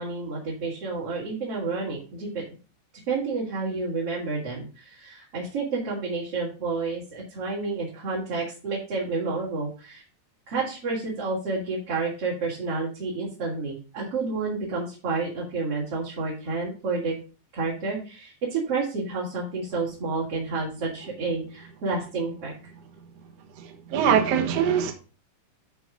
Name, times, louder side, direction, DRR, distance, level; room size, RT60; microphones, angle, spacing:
voice 1, 0.0-2.4 3.1-10.0 10.5-17.1 17.5-22.5, right 4 dB, 40° right, 3.0 m, -30 dB
voice 2, 23.6-24.9, right 8 dB, 85° right, 1.3 m, -23 dB
12.0 x 4.1 x 5.1 m
omnidirectional pair, 5.1 m